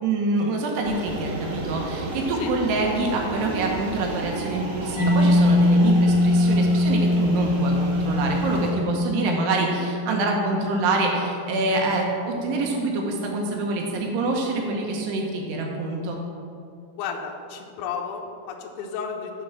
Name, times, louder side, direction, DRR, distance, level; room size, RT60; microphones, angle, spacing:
voice 1, 0.0-16.2, right 2 dB, 70° right, 1 dB, 2.9 m, -26 dB
sound 1, 0.8-8.7, right 2 dB, 55° right, 2.1 m, -33 dB
Mallet percussion, 5.0-12.5, left 1 dB, 60° left, 3.6 m, -22 dB
voice 2, 17.0-19.3, left 6 dB, 80° left, 1 dB, 2.3 m, -33 dB
12.5 x 4.7 x 6.2 m, 2.5 s
omnidirectional pair, 5.7 m